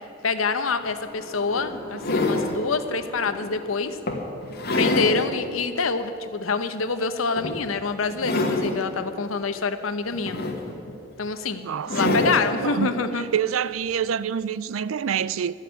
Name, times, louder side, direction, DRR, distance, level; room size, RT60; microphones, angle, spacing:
voice 1, 0.2-4.0 4.7-10.4 11.2-11.6 11.9-13.2, left 4 dB, 90° left, 0.8 m, -26 dB
sound 1, 0.8-0.9 1.6-2.6 3.3-3.4 4.1-5.2 5.7-5.8 7.4-7.7 8.1-8.9 10.0-10.9 11.9-12.5 13.8-13.9, left 2 dB, 50° left, 1.5 m, -26 dB
Motor vehicle (road) / Siren, 1.1-5.2, equal, 20° right, 3.1 m, -44 dB
voice 2, 11.6-12.2 12.6-12.9 13.2-15.6, right 7 dB, 85° right, 0.4 m, -26 dB
13.0 x 6.5 x 9.4 m
head